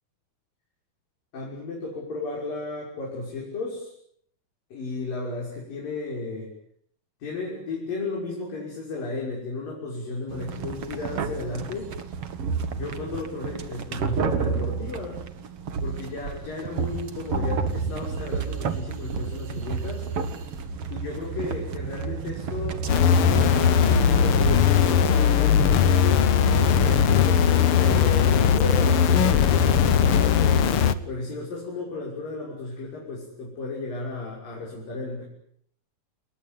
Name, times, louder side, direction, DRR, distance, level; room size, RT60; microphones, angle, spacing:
voice 1, 1.3-3.9 4.7-6.5 7.2-11.9 12.7-15.2 15.8-20.1 20.9-26.3 26.8-30.6 31.1-35.2, left 3 dB, 60° left, -2 dB, 8.1 m, -34 dB
sound 1, 10.3-24.6, right 5 dB, 45° right, 2.3 m, -30 dB
sound 2, 22.9-30.9, left 8 dB, 75° left, 1.2 m, -19 dB
29.0 x 21.0 x 9.5 m, 0.67 s
omnidirectional pair, 4.4 m